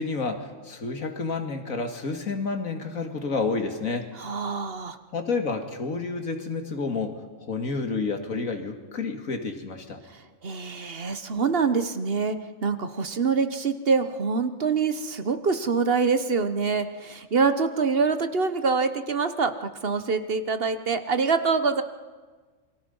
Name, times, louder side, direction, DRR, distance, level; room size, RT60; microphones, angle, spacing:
voice 1, 0.0-4.1 5.1-10.0, left 4 dB, 85° left, 5 dB, 2.5 m, -30 dB
voice 2, 4.1-5.0 10.1-21.8, right 5 dB, 50° right, 10 dB, 1.2 m, -25 dB
28.0 x 23.0 x 5.5 m, 1.4 s
omnidirectional pair, 1.4 m